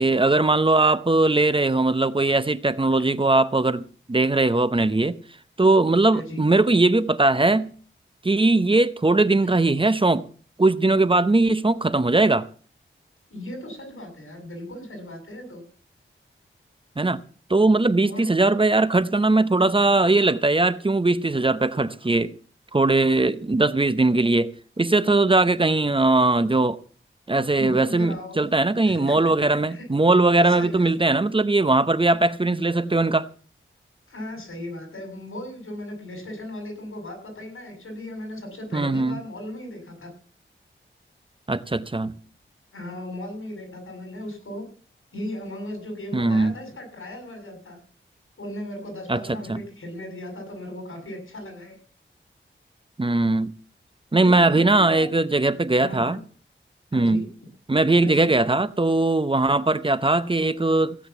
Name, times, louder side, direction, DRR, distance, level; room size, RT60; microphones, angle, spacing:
voice 1, 0.0-3.8 4.1-5.2 5.6-7.7 8.2-10.3 10.6-12.5 17.0-17.2 17.5-22.3 22.7-26.8 27.3-33.3 38.7-39.2 41.5-42.1 46.1-46.6 49.1-49.6 53.0-53.5 54.1-56.2 56.9-57.3 57.7-61.0, right 2 dB, 25° right, 0.8 m, -20 dB
voice 2, 13.3-15.6 18.0-18.3 27.6-28.3 28.9-29.3 29.7-29.8 30.3-30.9 34.1-40.1 42.7-44.6 45.1-47.8 48.4-51.8 54.2-55.0 55.8-56.2 56.9-57.3 58.0-58.3, left 1 dB, 90° left, 6.8 m, -36 dB
16.5 x 8.0 x 7.0 m
wide cardioid pair, 90°, 21 cm